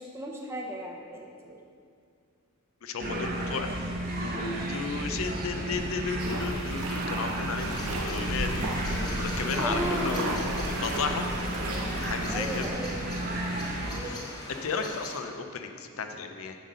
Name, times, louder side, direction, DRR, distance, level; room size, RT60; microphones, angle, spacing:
voice 1, 0.0-1.6 9.5-10.4 12.3-13.1 13.8-14.3 15.7-15.8, equal, 10° right, -1 dB, 0.7 m, -35 dB
voice 2, 2.8-3.9 4.2-11.3 12.0-12.7 14.1-16.6, left 4 dB, 70° left, 6 dB, 0.6 m, -34 dB
sound 1, 3.0-14.0, right 1 dB, 45° right, 0.9 m, -33 dB
sound 2, 6.2-12.7, right 1 dB, 85° right, 0.8 m, -35 dB
sound 3, 7.6-15.2, left 1 dB, 20° left, 0.9 m, -40 dB
7.7 x 4.0 x 6.3 m, 2.3 s
head